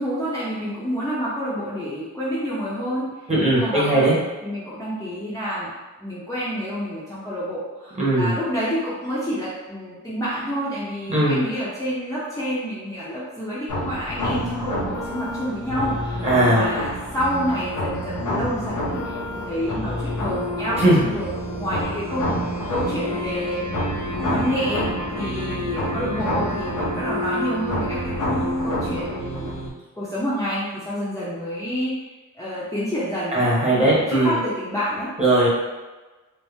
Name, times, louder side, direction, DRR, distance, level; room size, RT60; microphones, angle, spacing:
voice 1, 0.0-4.1 4.4-5.7 6.0-19.2 19.4-21.3 21.6-22.4 22.7-23.8 24.1-29.5 29.9-35.1, equal, 10° left, -9 dB, 0.7 m, -28 dB
voice 2, 3.3-4.1 8.0-8.3 11.1-11.4 16.2-16.6 20.8-21.0 33.3-34.4 35.2-35.5, right 1 dB, 20° right, -6 dB, 1.2 m, -18 dB
sound 1, 13.7-29.7, equal, 75° left, 0.8 m, -27 dB
4.4 x 2.1 x 3.4 m, 1.2 s
wide cardioid pair, 130°, 31 cm